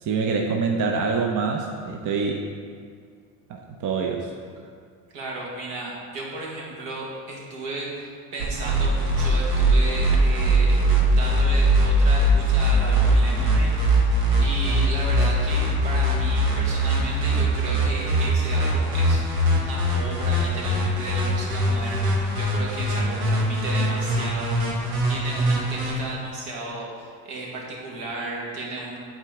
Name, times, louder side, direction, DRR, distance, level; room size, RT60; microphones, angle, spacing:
voice 1, 0.0-2.5 3.5-4.3, right 4 dB, 40° right, 2 dB, 0.6 m, -25 dB
voice 2, 5.1-29.0, right 2 dB, 70° right, -3 dB, 1.6 m, -34 dB
sound 1, 8.4-25.9, right 1 dB, 85° right, 1.2 m, -21 dB
8.2 x 3.8 x 3.5 m, 2.1 s
hypercardioid pair, 65°, 47 cm